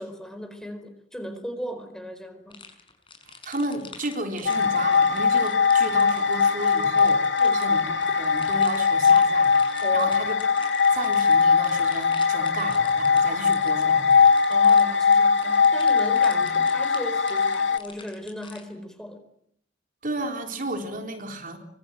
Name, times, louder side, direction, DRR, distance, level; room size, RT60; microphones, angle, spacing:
voice 1, 0.0-2.6 7.4-7.7 9.8-10.1 14.5-19.3, equal, 5° left, 9 dB, 4.6 m, -37 dB
sound 1, 2.5-18.7, left 5 dB, 30° left, 6.2 m, -47 dB
voice 2, 3.4-7.2 7.5-9.6 9.9-10.3 10.9-14.2 16.3-16.5 20.0-21.6, right 2 dB, 45° right, 4 dB, 3.9 m, -32 dB
sound 2, 4.5-17.8, left 5 dB, 80° left, 2.2 m, -20 dB
25.5 x 24.0 x 9.3 m, 0.72 s
head